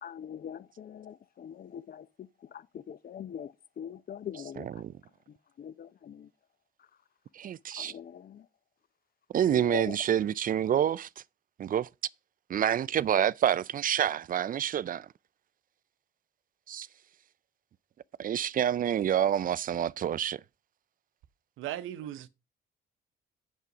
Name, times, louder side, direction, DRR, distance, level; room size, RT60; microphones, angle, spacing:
voice 1, 0.0-2.1 2.5-4.7 5.6-6.3 7.8-8.4 9.5-10.0, left 9 dB, 50° left, 0.7 m, -42 dB
voice 2, 4.6-4.9 7.3-7.9 9.3-11.1 11.6-11.9 12.5-15.1 16.7-16.9 18.2-20.4, right 10 dB, 45° right, 0.4 m, -28 dB
voice 3, 21.6-22.3, right 12 dB, 90° right, 0.8 m, -37 dB
8.2 x 7.2 x 5.0 m
cardioid pair, 90°, 20 cm